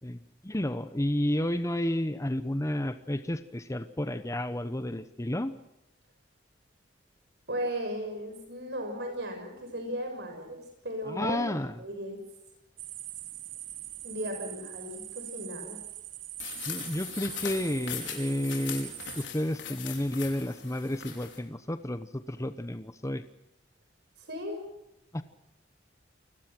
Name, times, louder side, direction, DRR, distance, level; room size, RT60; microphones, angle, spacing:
voice 1, 0.0-5.5 11.1-11.8 16.7-23.2 25.1-25.2, left 1 dB, 15° left, 11 dB, 1.0 m, -31 dB
voice 2, 7.5-12.2 14.0-15.8 24.2-24.6, equal, 65° right, 4 dB, 6.5 m, -36 dB
sound 1, 12.8-19.2, right 14 dB, 90° right, 1.7 m, -42 dB
sound 2, 16.4-21.4, left 9 dB, 80° left, 5.3 m, -40 dB
29.0 x 21.0 x 6.1 m, 0.86 s
head